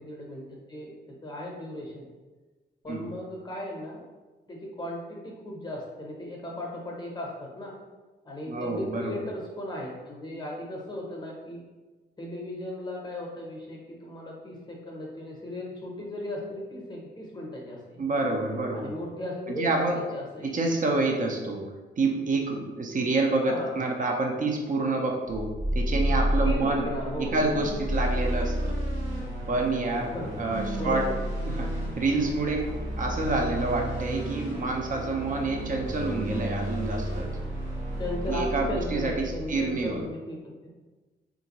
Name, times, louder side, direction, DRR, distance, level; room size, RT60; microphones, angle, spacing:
voice 1, 0.0-2.1 2.8-4.0 4.5-7.7 8.2-11.6 12.2-18.0 18.7-20.5 23.4-23.9 26.4-27.6 30.0-31.2 38.0-40.7, left 1 dB, 25° left, -2 dB, 0.7 m, -37 dB
voice 2, 8.5-9.2 18.0-18.9 19.5-20.0 20.4-21.6 22.0-25.5 25.7-26.8 27.2-28.8 29.5-30.1 30.4-31.0 31.4-31.7 32.0-32.6 33.0-37.3 38.3-40.0, right 2 dB, 45° right, 2 dB, 0.6 m, -28 dB
sound 1, 25.3-39.9, right 1 dB, 80° right, 1.0 m, -31 dB
3.6 x 2.5 x 2.9 m, 1.3 s
cardioid pair, 105°, 19 cm